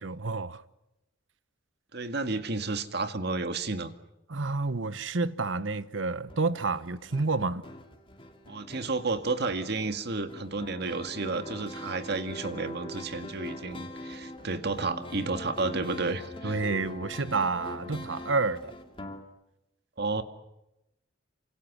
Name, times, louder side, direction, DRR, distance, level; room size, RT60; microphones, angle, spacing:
voice 1, 0.0-0.6 4.3-7.6 16.4-18.7, right 3 dB, 75° right, 1.1 m, -29 dB
voice 2, 1.9-3.9 8.5-16.6 20.0-20.2, right 3 dB, 60° right, 1.9 m, -31 dB
sound 1, 6.3-19.2, left 1 dB, 25° left, 2.6 m, -43 dB
28.0 x 26.0 x 6.2 m
head